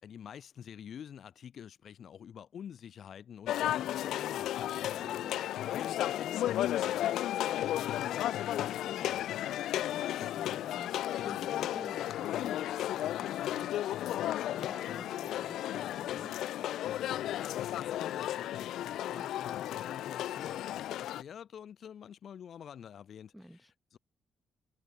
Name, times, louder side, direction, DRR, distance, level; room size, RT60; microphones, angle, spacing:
voice 1, 0.0-4.9 5.6-9.6 17.1-23.3 23.9-24.0, left 8 dB, 60° left, 6.4 m, -47 dB
sound 1, 3.5-21.2, left 13 dB, 80° left, 0.4 m, -34 dB
voice 2, 4.9-5.4 9.6-16.3 18.9-19.3 23.3-23.7, equal, ahead, 2.0 m, -52 dB
cardioid pair, 90°, 0 cm